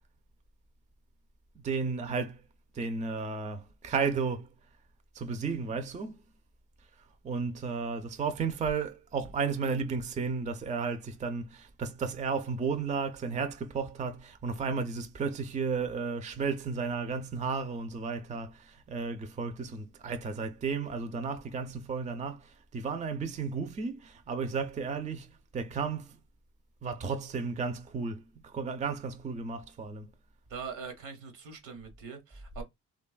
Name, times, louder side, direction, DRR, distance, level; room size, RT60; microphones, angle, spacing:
voice 1, 1.6-2.4 2.7-4.5 5.1-6.3 7.0-26.2 26.8-30.1, right 5 dB, 25° right, 0.4 m, -33 dB
voice 2, 30.5-32.6, right 5 dB, 80° right, 1.1 m, -42 dB
3.0 x 2.3 x 2.3 m
cardioid pair, 90°, 30 cm